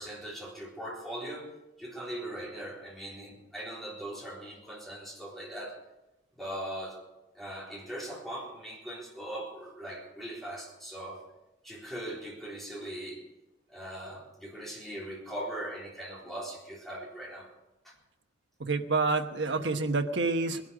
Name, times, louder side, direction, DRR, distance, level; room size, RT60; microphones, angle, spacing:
voice 1, 0.0-5.8 6.4-7.0 7.3-11.2 11.6-13.2 13.7-17.5 17.8-17.9, right 1 dB, ahead, -4 dB, 3.8 m, -40 dB
voice 2, 18.6-20.6, right 3 dB, 75° right, 6 dB, 1.2 m, -28 dB
20.0 x 11.5 x 5.0 m, 1.0 s
head